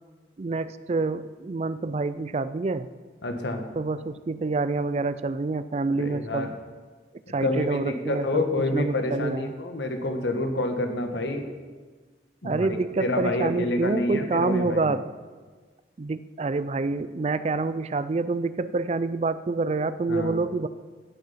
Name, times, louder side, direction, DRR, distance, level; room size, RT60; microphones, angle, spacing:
voice 1, 0.4-2.9 3.8-6.5 7.3-8.4 8.7-9.5 12.4-15.1 16.0-20.7, right 3 dB, 35° right, 14 dB, 0.4 m, -27 dB
voice 2, 3.2-3.7 5.9-6.5 7.4-11.5 12.4-12.7 13.0-14.9 20.1-20.3, left 2 dB, 85° left, 5 dB, 1.4 m, -28 dB
16.0 x 6.7 x 5.7 m, 1.4 s
head